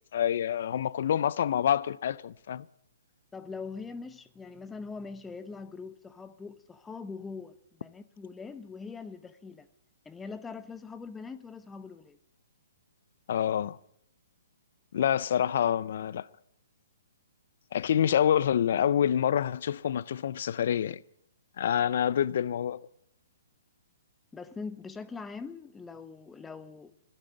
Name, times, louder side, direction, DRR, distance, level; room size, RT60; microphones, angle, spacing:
voice 1, 0.1-2.7 13.3-13.8 14.9-16.3 17.7-21.0 21.6-22.8, left 9 dB, 60° left, 0.5 m, -27 dB
voice 2, 3.3-9.7 10.1-12.2 24.3-26.9, left 4 dB, 10° left, 0.8 m, -42 dB
13.0 x 11.5 x 9.4 m
hypercardioid pair, 145°, 0 cm